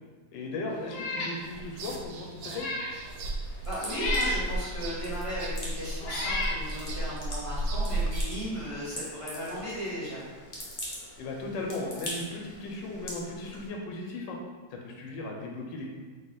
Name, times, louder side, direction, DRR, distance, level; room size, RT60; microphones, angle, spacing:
voice 1, 0.3-2.7 11.2-14.4 14.7-15.9, left 2 dB, 85° left, 0 dB, 1.4 m, -36 dB
Meow, 0.9-1.4 1.8-1.9 2.4-3.0 3.9-4.5 5.3-5.4 6.0-6.6, left 2 dB, 65° left, 1.2 m, -31 dB
sound 1, 1.4-8.2, right 1 dB, 75° right, 1.0 m, -34 dB
sound 2, 3.0-13.7, left 1 dB, 35° left, 0.8 m, -44 dB
voice 2, 3.6-10.2, equal, 20° left, -10 dB, 1.4 m, -36 dB
4.1 x 2.7 x 3.9 m, 1.4 s
omnidirectional pair, 1.9 m